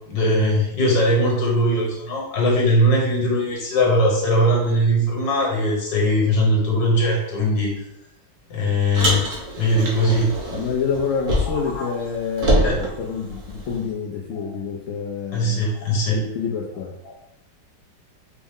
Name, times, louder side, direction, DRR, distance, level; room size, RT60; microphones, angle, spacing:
voice 1, 0.0-7.9 8.5-9.3 9.6-10.3 11.4-11.9 12.6-13.0 14.3-14.4 15.3-16.2 17.0-17.1, equal, 65° left, -2 dB, 1.6 m, -20 dB
Car, 8.9-11.8 12.0-13.8, right 1 dB, 65° right, 1.4 m, -25 dB
voice 2, 10.5-15.6 16.1-16.9, left 6 dB, 85° left, -2 dB, 0.7 m, -27 dB
4.4 x 2.1 x 3.6 m, 0.82 s
omnidirectional pair, 1.9 m